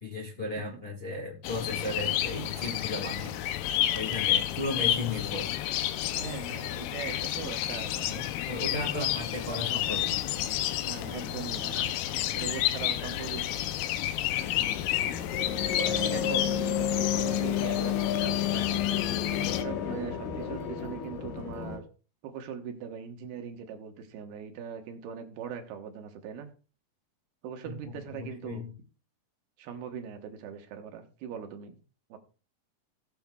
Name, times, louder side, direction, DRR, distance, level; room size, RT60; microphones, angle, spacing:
voice 1, 0.0-5.5 8.1-10.2 15.8-16.1 27.6-27.8 28.2-28.7, left 2 dB, 40° left, -1 dB, 0.8 m, -36 dB
sound 1, 1.4-19.6, left 12 dB, 90° left, 2.6 m, -31 dB
voice 2, 6.1-8.2 9.9-10.2 10.9-11.9 12.4-13.5 14.9-15.1 15.7-19.0 19.5-21.8 22.2-26.5 27.4-28.6 29.6-31.8 32.1-32.2, right 7 dB, 85° right, 5 dB, 3.1 m, -41 dB
sound 2, 14.4-21.8, left 9 dB, 65° left, 2.6 m, -31 dB
18.0 x 7.0 x 2.3 m, 0.37 s
omnidirectional pair, 4.4 m